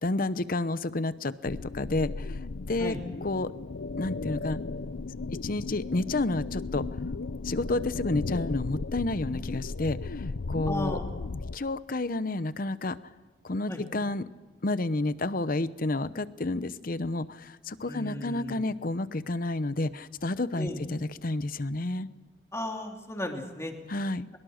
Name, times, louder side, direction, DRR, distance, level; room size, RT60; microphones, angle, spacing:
voice 1, 0.0-2.4 2.7-2.9 3.2-3.5 4.0-4.6 5.4-6.8 7.4-11.0 11.5-13.0 13.4-14.2 14.6-22.1 23.9-24.3, left 2 dB, 50° left, 15 dB, 0.8 m, -30 dB
sound 1, 1.4-11.6, left 3 dB, 80° left, 0.6 m, -35 dB
voice 2, 10.7-11.0 13.7-13.8 17.8-18.6 20.6-20.8 22.5-23.7, left 1 dB, 15° left, 2 dB, 2.7 m, -35 dB
23.0 x 22.0 x 6.5 m, 1.3 s
head